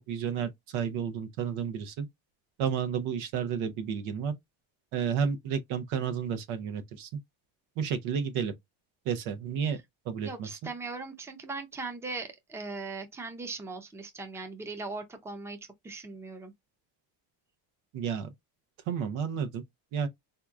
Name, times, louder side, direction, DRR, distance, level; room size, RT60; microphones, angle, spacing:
voice 1, 0.1-2.1 2.6-4.3 4.9-7.1 7.8-8.5 9.1-9.8 10.1-10.5 17.9-18.3 18.9-19.6 19.9-20.1, right 7 dB, 85° right, 0.9 m, -31 dB
voice 2, 10.2-15.6 15.8-16.5, right 3 dB, 5° right, 0.5 m, -39 dB
3.5 x 2.8 x 2.3 m
cardioid pair, 125°, 48 cm